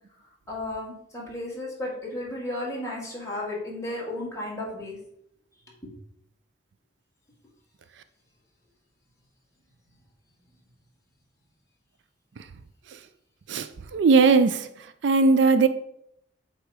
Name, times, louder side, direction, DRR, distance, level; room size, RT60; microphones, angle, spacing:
voice 1, 0.5-5.0 5.8-5.9, left 1 dB, 15° left, 2.0 m, -34 dB
voice 2, 13.5-14.7 15.0-15.7, right 4 dB, 65° right, 0.4 m, -19 dB
8.0 x 3.0 x 4.7 m
head